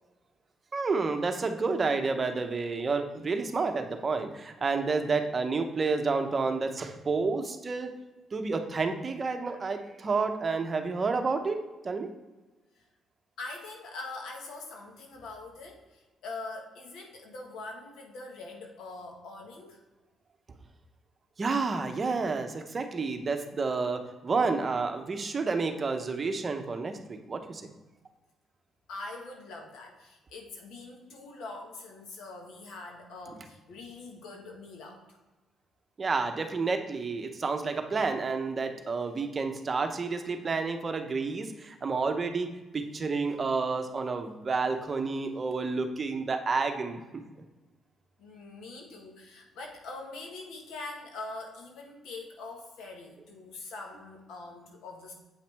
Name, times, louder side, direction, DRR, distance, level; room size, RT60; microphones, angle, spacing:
voice 1, 0.7-7.9 8.3-11.6 11.8-12.1 21.4-27.7 36.0-47.0, right 4 dB, 35° right, 6 dB, 0.8 m, -30 dB
voice 2, 13.4-19.8 28.9-35.2 48.2-55.1, left 3 dB, 85° left, 2 dB, 1.6 m, -43 dB
8.1 x 5.6 x 3.5 m, 1.2 s
cardioid pair, 90°, 0 cm